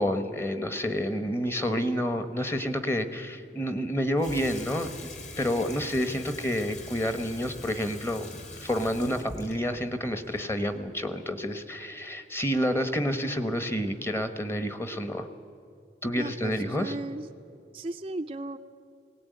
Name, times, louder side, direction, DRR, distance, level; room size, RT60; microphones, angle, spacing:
voice 1, 0.0-4.9 5.4-15.3 16.0-16.9, equal, 15° left, 10 dB, 1.0 m, -29 dB
Water tap faucet / Sink (filling or washing), 4.2-11.2, left 2 dB, 40° left, 2.2 m, -44 dB
voice 2, 16.2-17.3 17.7-18.6, right 2 dB, 30° right, 6 dB, 0.4 m, -36 dB
20.0 x 18.0 x 9.3 m, 2.5 s
head